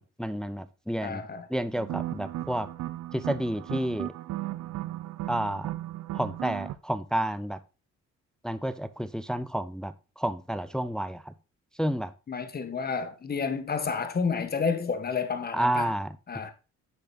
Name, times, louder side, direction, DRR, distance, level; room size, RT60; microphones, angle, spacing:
voice 1, 0.2-1.2 1.5-2.7 3.1-4.1 5.3-5.7 6.1-7.6 8.4-11.3 11.8-12.1 15.5-16.1, right 1 dB, ahead, 0.6 m, -30 dB
voice 2, 1.0-1.5 12.3-15.9 16.3-16.5, left 5 dB, 30° left, 1.3 m, -30 dB
sound 1, 1.8-6.8, right 14 dB, 70° right, 0.7 m, -36 dB
10.0 x 6.6 x 2.4 m
cardioid pair, 90°, 30 cm